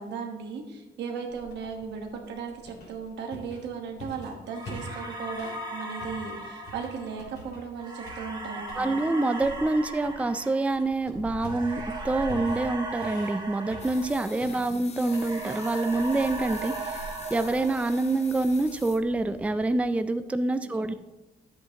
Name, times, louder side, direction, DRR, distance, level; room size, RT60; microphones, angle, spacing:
voice 1, 0.0-9.0 20.9-21.0, right 5 dB, 90° right, 3 dB, 1.3 m, -37 dB
sound 1, 1.3-5.7 6.0-7.7 8.0-8.9 9.3-19.8, equal, 70° left, 3.4 m, -45 dB
sound 2, 4.5-14.7 15.0-18.4, right 2 dB, 25° right, 2.2 m, -38 dB
voice 2, 8.7-17.0 17.3-20.9, right 2 dB, 5° right, 10 dB, 0.4 m, -26 dB
sound 3, 13.8-19.5, left 5 dB, 40° left, 0.8 m, -46 dB
10.5 x 7.9 x 2.9 m, 1.0 s
cardioid pair, 95°, 17 cm